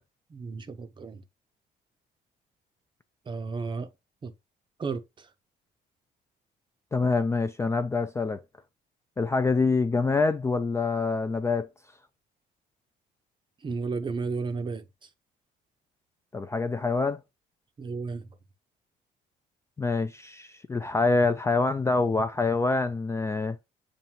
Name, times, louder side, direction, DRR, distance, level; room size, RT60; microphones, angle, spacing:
voice 1, 0.3-1.2 3.3-3.9 4.2-4.3 4.8-5.3 13.6-15.1 17.8-18.3, right 4 dB, 30° right, 0.6 m, -33 dB
voice 2, 6.9-8.4 9.2-11.7 16.3-17.2 19.8-23.6, left 3 dB, 15° left, 0.3 m, -26 dB
7.1 x 2.6 x 2.8 m
cardioid pair, 110°, 17 cm